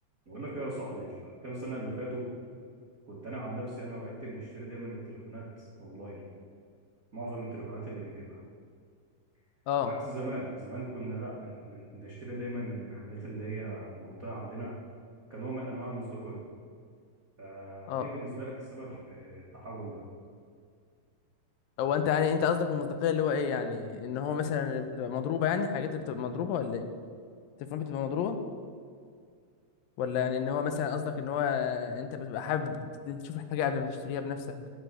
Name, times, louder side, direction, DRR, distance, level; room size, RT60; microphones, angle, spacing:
voice 1, 0.2-2.2 3.1-6.3 7.1-8.4 9.8-14.7 15.3-16.5 17.4-20.1, right 1 dB, 50° right, -6 dB, 1.0 m, -39 dB
voice 2, 21.8-26.9 27.7-28.4 30.0-34.6, left 7 dB, 85° left, 8 dB, 2.4 m, -30 dB
9.1 x 6.3 x 6.7 m, 2.2 s
omnidirectional pair, 4.0 m